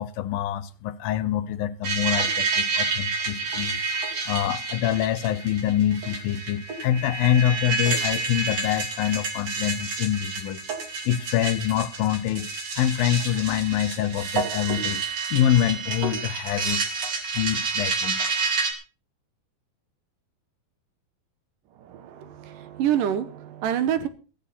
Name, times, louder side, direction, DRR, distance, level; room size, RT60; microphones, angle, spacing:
voice 1, 0.0-10.6 11.1-12.5 12.8-15.0 15.3-16.8 17.3-18.2, left 11 dB, 80° left, 2.7 m, -25 dB
sound 1, 1.8-18.7, right 4 dB, 50° right, 3.5 m, -29 dB
voice 2, 21.8-24.1, right 10 dB, 75° right, 2.6 m, -27 dB
15.5 x 14.5 x 4.2 m
omnidirectional pair, 4.1 m